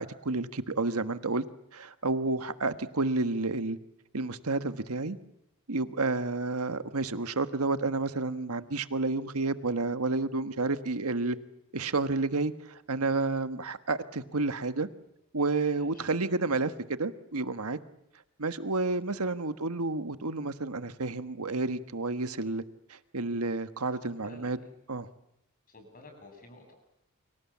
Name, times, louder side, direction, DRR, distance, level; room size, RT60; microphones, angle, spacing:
voice 1, 0.0-1.4 1.7-3.8 4.1-5.2 5.7-11.4 11.7-14.9 15.3-17.8 18.4-22.6 22.9-24.6 24.9-25.1, right 3 dB, 80° right, 10 dB, 1.4 m, -30 dB
voice 2, 15.7-16.1 19.1-19.2 23.9-24.5 25.7-26.7, left 2 dB, 40° left, 5 dB, 7.7 m, -52 dB
29.0 x 25.5 x 7.4 m, 0.79 s
head